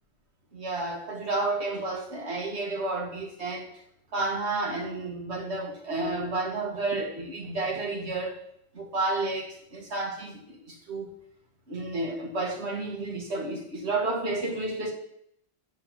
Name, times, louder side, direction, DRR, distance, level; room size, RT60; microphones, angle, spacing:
voice 1, 0.5-3.7 4.1-8.4 8.7-11.1 11.7-14.9, right 2 dB, 85° right, 3 dB, 1.7 m, -31 dB
9.7 x 3.6 x 7.1 m, 0.72 s
omnidirectional pair, 1.1 m